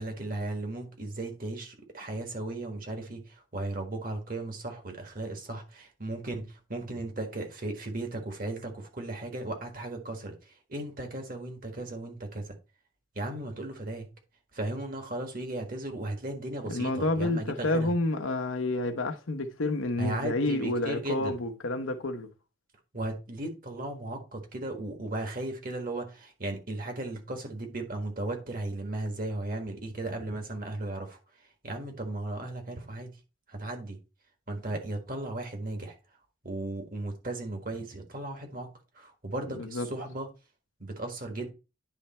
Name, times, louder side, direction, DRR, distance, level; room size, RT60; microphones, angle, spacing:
voice 1, 0.0-10.3 10.7-12.6 13.1-14.1 14.5-17.9 20.0-21.4 22.9-31.2 31.6-33.1 33.5-34.0 34.5-35.9 36.4-38.7 38.9-40.3 40.8-41.5, right 2 dB, 45° right, 1.6 m, -36 dB
voice 2, 16.7-22.3 39.5-39.9, left 2 dB, 85° left, 0.9 m, -29 dB
9.9 x 3.4 x 4.2 m
head